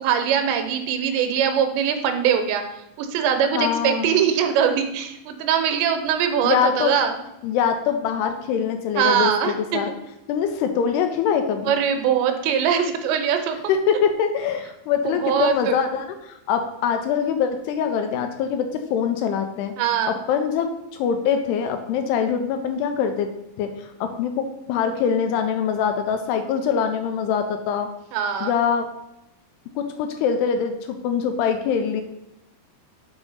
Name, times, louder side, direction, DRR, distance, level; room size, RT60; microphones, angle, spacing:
voice 1, 0.0-2.6 3.0-7.1 9.0-9.5 11.7-13.6 15.2-15.7 19.8-20.2 28.1-28.5, right 8 dB, 85° right, 7 dB, 3.0 m, -22 dB
voice 2, 3.5-4.2 6.4-6.9 7.4-9.9 10.3-11.7 13.7-19.7 20.1-23.3 23.6-27.9 28.4-28.9 29.8-32.0, left 7 dB, 80° left, 7 dB, 2.5 m, -23 dB
6.2 x 5.1 x 5.4 m, 0.88 s
omnidirectional pair, 5.0 m